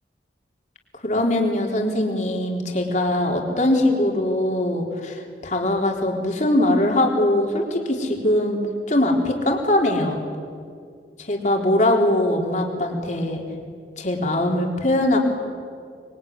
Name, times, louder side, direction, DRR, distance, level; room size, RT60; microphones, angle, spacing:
voice 1, 0.9-8.6 8.9-10.2 11.2-13.4 14.0-15.2, left 1 dB, 40° left, 1 dB, 3.8 m, -21 dB
25.5 x 22.5 x 9.6 m, 2.2 s
head